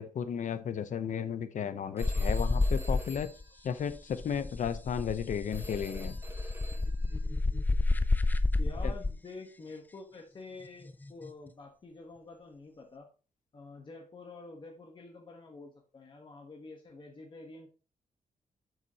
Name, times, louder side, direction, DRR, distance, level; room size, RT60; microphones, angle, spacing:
voice 1, 0.0-3.3 3.6-6.2 8.8-8.9, left 7 dB, 65° left, 12 dB, 0.8 m, -34 dB
sound 1, 2.0-3.4 3.7-9.1 10.9-11.3, left 2 dB, 15° left, 0.4 m, -30 dB
Telephone, 2.0-4.3 5.5-7.2, right 1 dB, 15° right, 1.7 m, -50 dB
voice 2, 8.6-13.1 13.5-17.7, left 3 dB, 35° left, 1 dB, 1.3 m, -48 dB
8.0 x 6.9 x 2.9 m, 0.34 s
wide cardioid pair, 170°, 14 cm